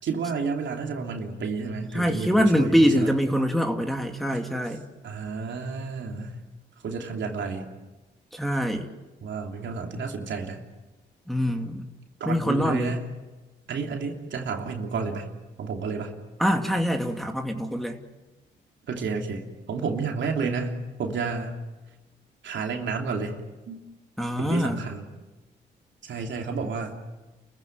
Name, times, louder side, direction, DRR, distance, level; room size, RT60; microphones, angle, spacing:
voice 1, 0.0-3.1 5.0-6.4 6.8-7.7 9.2-10.6 12.2-13.0 13.7-16.2 18.9-21.6 22.4-23.8 24.4-25.0 26.0-27.0, right 4 dB, 75° right, 3 dB, 3.1 m, -31 dB
voice 2, 1.9-4.9 8.3-8.9 11.3-11.9 12.3-12.9 16.4-18.0 24.2-24.8, equal, ahead, 3 dB, 2.6 m, -24 dB
30.0 x 15.5 x 9.4 m, 1.1 s
supercardioid pair, 55°, 20 cm